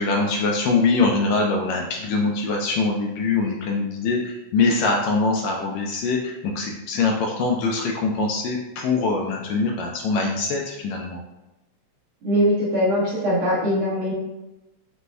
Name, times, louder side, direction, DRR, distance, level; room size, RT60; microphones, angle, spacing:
voice 1, 0.0-11.2, left 3 dB, 80° left, 0 dB, 1.7 m, -23 dB
voice 2, 12.2-14.1, equal, 60° right, -9 dB, 1.5 m, -21 dB
5.1 x 2.2 x 3.2 m, 1.0 s
omnidirectional pair, 3.4 m